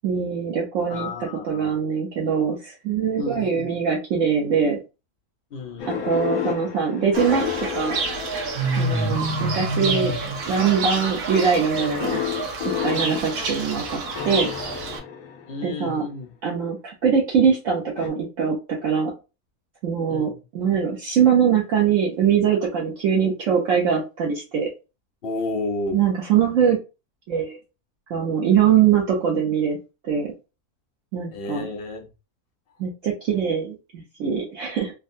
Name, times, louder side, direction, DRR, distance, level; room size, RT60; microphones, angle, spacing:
voice 1, 0.0-4.8 5.9-8.0 8.8-10.1 10.5-12.2 12.8-14.5 15.6-16.0 16.4-19.1 19.8-24.7 25.9-26.8 27.3-27.6 28.1-29.8 30.0-30.3 31.1-31.7 32.8-34.9, right 7 dB, 65° right, -1 dB, 1.0 m, -22 dB
voice 2, 0.9-1.7 3.2-3.8 5.5-6.1 15.5-16.3 20.1-20.4 25.2-26.0 31.3-32.1, left 3 dB, 50° left, 1 dB, 0.8 m, -31 dB
sound 1, 5.8-9.2 9.9-10.4 11.8-15.9 18.0-18.1, left 8 dB, 70° left, 1.1 m, -31 dB
Fowl / Bird, 7.1-15.0, right 3 dB, 85° right, 1.3 m, -27 dB
3.6 x 2.2 x 2.5 m, 0.29 s
omnidirectional pair, 1.6 m